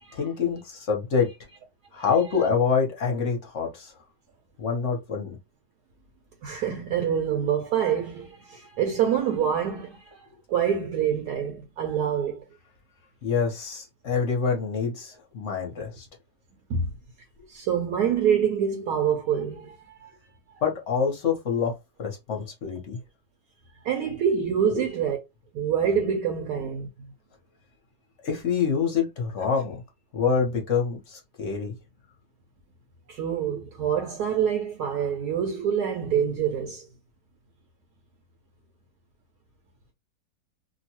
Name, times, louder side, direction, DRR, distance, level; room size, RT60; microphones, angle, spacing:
voice 1, 0.1-1.3 1.9-3.9 4.6-5.4 13.2-16.1 20.6-21.7 22.0-23.0 24.7-24.8 28.2-29.8 30.1-31.7, left 6 dB, 50° left, 1.0 m, -26 dB
voice 2, 6.4-10.2 10.5-12.4 16.7-16.9 17.5-20.1 23.8-25.2 25.5-26.9 33.1-36.9, right 8 dB, 70° right, 1.0 m, -26 dB
2.9 x 2.2 x 2.8 m
omnidirectional pair, 1.9 m